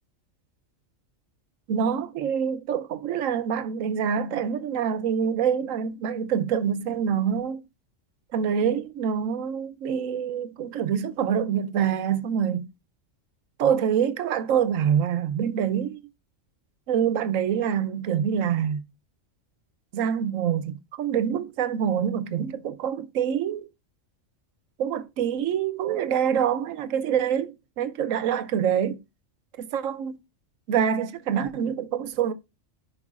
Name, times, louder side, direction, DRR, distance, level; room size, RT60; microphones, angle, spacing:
voice 1, 1.7-7.6 8.3-12.7 13.6-16.0 16.9-18.8 19.9-23.7 24.8-29.0 29.6-30.2 30.7-32.3, right 8 dB, 85° right, 1.1 m, -26 dB
14.0 x 5.2 x 2.4 m
omnidirectional pair, 1.3 m